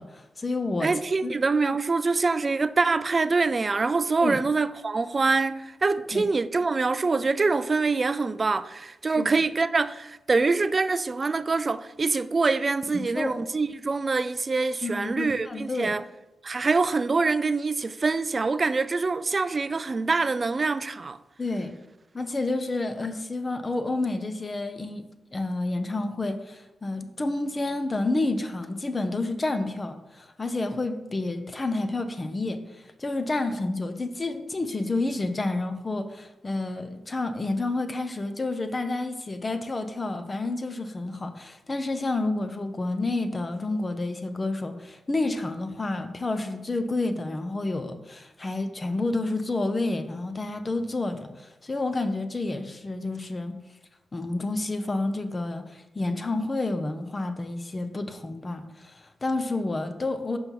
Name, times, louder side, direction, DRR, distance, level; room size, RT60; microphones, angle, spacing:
voice 1, 0.0-0.9 1.2-1.4 4.2-4.4 6.1-6.2 9.1-9.3 12.9-13.3 14.8-15.9 21.4-21.7 22.1-25.0 25.3-32.6 33.0-53.6 54.1-60.4, left 2 dB, 35° left, 0.7 m, -29 dB
voice 2, 0.8-16.0 16.4-21.2, right 4 dB, 40° right, 0.3 m, -25 dB
5.5 x 5.3 x 4.6 m
cardioid pair, 55°, 0 cm